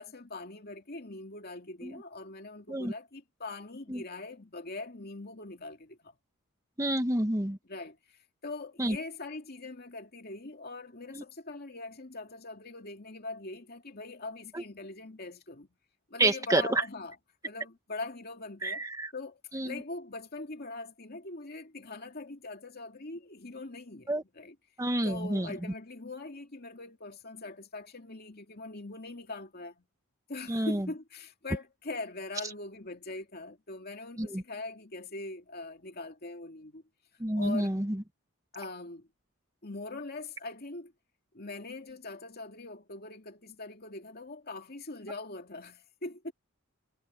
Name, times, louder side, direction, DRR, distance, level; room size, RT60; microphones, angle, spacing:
voice 1, 0.0-6.2 7.6-8.0 8.4-15.7 16.1-17.2 17.4-18.8 19.1-24.6 25.0-29.8 30.3-36.8 37.3-37.8 38.5-39.1 39.6-40.9 41.3-46.3, left 2 dB, 45° left, 2.6 m, -42 dB
voice 2, 6.8-7.6 8.8-9.0 11.1-11.2 14.5-14.6 16.2-16.8 18.6-19.1 19.5-19.7 24.1-24.2 24.8-25.5 30.5-30.8 34.2-34.4 37.2-38.0, right 1 dB, 15° right, 1.2 m, -29 dB
head